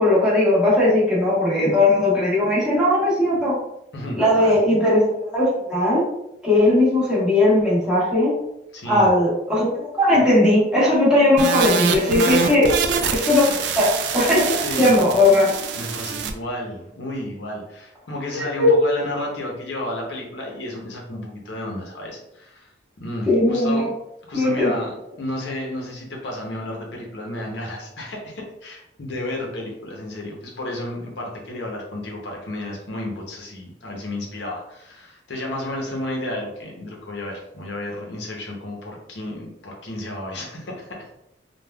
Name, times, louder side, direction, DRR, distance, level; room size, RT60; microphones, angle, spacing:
voice 1, 0.0-3.6 4.2-6.1 6.4-8.3 8.9-12.7 13.2-13.9 14.1-15.5 18.3-18.8 23.3-23.9 24.3-24.7, left 1 dB, 5° right, -8 dB, 1.0 m, -18 dB
voice 2, 3.9-4.6 8.7-9.1 12.2-12.8 13.3-13.6 14.6-14.9 15.7-22.7 23.0-23.9 24.3-41.1, left 1 dB, 75° left, -1 dB, 0.7 m, -32 dB
sound 1, 11.4-16.3, right 6 dB, 75° right, 0.3 m, -25 dB
3.4 x 2.2 x 2.2 m, 0.83 s
head